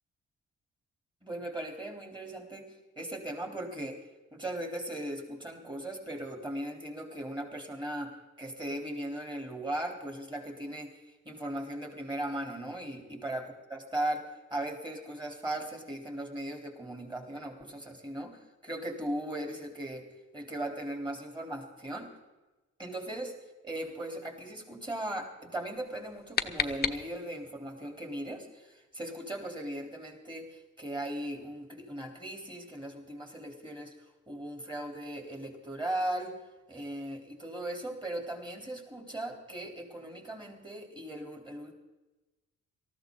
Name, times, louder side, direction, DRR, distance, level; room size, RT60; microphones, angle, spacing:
voice 1, 1.2-2.7 3.0-4.0 4.3-20.1 20.3-22.2 22.8-23.3 23.6-33.9 34.3-36.3 36.7-41.8, right 1 dB, 15° right, 2 dB, 3.7 m, -38 dB
sound 1, 25.9-27.5, left 5 dB, 30° left, 1.0 m, -34 dB
18.5 x 14.5 x 3.9 m, 1.1 s
cardioid pair, 90°, 30 cm